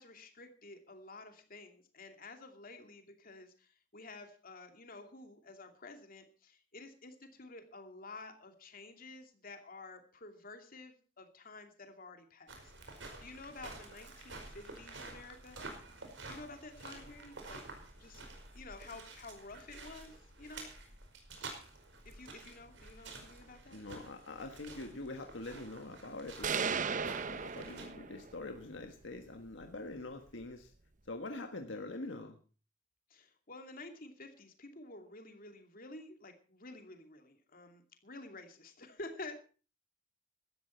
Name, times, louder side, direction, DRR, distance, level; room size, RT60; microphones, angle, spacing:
voice 1, 0.0-12.7 13.2-15.6 16.3-17.6 17.9-18.2 18.5-20.7 22.0-23.8 33.1-39.4, left 2 dB, 50° left, 5 dB, 2.7 m, -51 dB
sound 1, 12.5-27.8, right 3 dB, 75° right, 5.1 m, -50 dB
voice 2, 23.7-26.8 27.2-30.7 31.1-32.3, left 2 dB, 75° left, 5 dB, 1.5 m, -44 dB
sound 2, 26.4-28.4, right 5 dB, 40° right, 0.8 m, -35 dB
17.0 x 13.0 x 4.5 m, 0.37 s
head